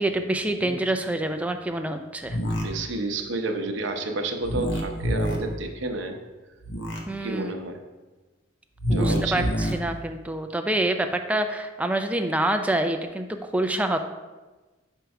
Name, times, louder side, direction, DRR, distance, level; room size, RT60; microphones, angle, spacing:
voice 1, 0.0-2.4 7.1-7.5 8.9-14.0, right 1 dB, 5° right, 6 dB, 0.3 m, -26 dB
sound 1, 2.3-2.6 4.4-5.4 6.6-7.0 8.8-9.7, equal, 65° left, 0.9 m, -26 dB
voice 2, 2.4-6.2 7.2-7.8 8.9-9.5, right 2 dB, 70° right, 4 dB, 0.7 m, -30 dB
5.2 x 4.5 x 4.7 m, 1.2 s
head